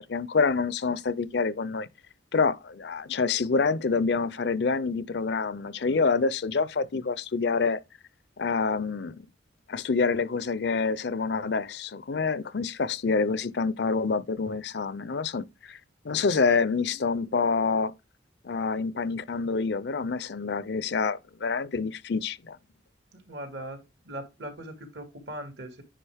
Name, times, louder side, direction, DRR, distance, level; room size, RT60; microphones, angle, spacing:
voice 1, 0.1-1.9 2.3-7.8 8.4-9.2 9.7-15.8 16.0-17.9 18.4-22.6, left 4 dB, 60° left, 0.5 m, -27 dB
voice 2, 23.1-25.8, right 1 dB, 65° right, 2.1 m, -40 dB
10.0 x 4.8 x 3.5 m
head